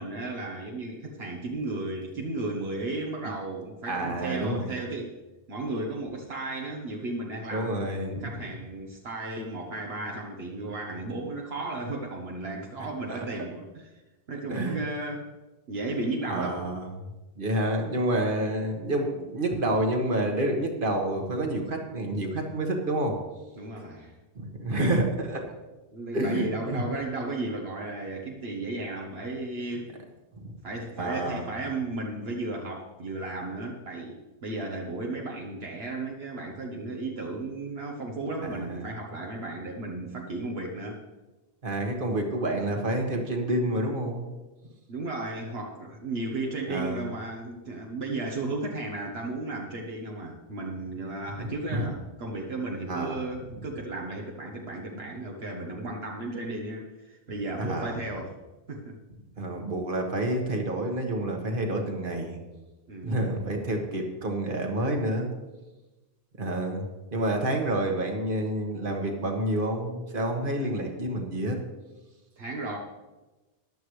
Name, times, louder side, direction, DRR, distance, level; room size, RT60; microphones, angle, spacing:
voice 1, 0.0-5.2 5.5-13.9 14.3-15.3 15.7-16.7 23.6-24.2 25.9-30.0 30.6-41.0 44.9-58.4 58.7-59.0 62.9-63.3 67.4-67.5 72.4-72.8, right 2 dB, 75° right, 0 dB, 1.4 m, -34 dB
voice 2, 3.9-4.7 7.5-8.3 13.1-13.3 14.5-14.8 16.2-16.9 17.4-23.2 23.8-23.9 24.4-25.4 26.1-26.8 30.4-30.5 31.0-31.5 38.4-38.9 41.6-44.3 46.7-47.0 51.4-51.9 52.9-53.2 57.6-58.0 59.4-62.4 63.0-65.3 66.4-66.9 67.1-71.6, right 1 dB, 55° right, 2 dB, 1.7 m, -29 dB
14.5 x 11.5 x 3.2 m, 1.1 s
omnidirectional pair, 1.0 m